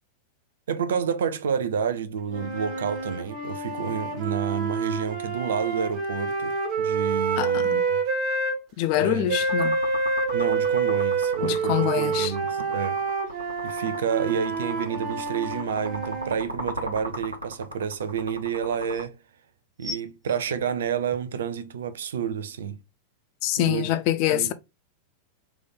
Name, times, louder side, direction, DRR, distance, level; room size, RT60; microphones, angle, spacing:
voice 1, 0.7-8.0 9.0-9.3 10.3-13.0 13.6-19.2 19.8-22.8 23.6-24.0 24.3-24.5, right 7 dB, 65° right, 0.6 m, -29 dB
sound 1, 2.3-8.6 9.3-16.4, right 4 dB, 40° right, 1.7 m, -27 dB
voice 2, 7.4-7.8 8.8-9.7 11.4-12.3 23.4-24.5, left 12 dB, 45° left, 0.5 m, -25 dB
sound 2, 9.5-19.0, equal, 80° right, 1.2 m, -37 dB
sound 3, 18.6-19.1 19.8-21.4 22.1-22.2, left 2 dB, ahead, 1.5 m, -40 dB
3.6 x 3.2 x 3.8 m
figure-of-eight pair, 90°, 0 cm